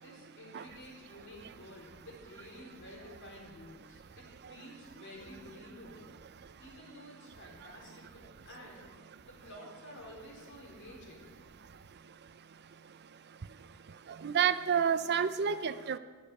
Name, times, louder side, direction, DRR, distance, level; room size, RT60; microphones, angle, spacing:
voice 1, 0.0-6.1 6.6-8.9 9.3-11.3, left 1 dB, 60° left, -2 dB, 4.3 m, -51 dB
voice 2, 14.2-16.0, right 7 dB, 50° right, 13 dB, 0.5 m, -29 dB
16.0 x 6.7 x 10.0 m, 1.5 s
head